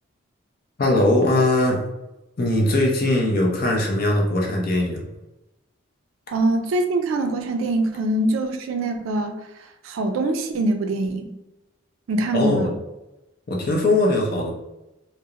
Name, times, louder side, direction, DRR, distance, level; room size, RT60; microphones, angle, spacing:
voice 1, 0.8-1.8 2.4-5.1 12.3-12.7 13.5-14.5, left 1 dB, 45° left, 0 dB, 0.5 m, -20 dB
voice 2, 6.3-11.4 12.1-12.7, right 2 dB, 80° right, 6 dB, 0.3 m, -24 dB
2.8 x 2.0 x 2.3 m, 0.96 s
head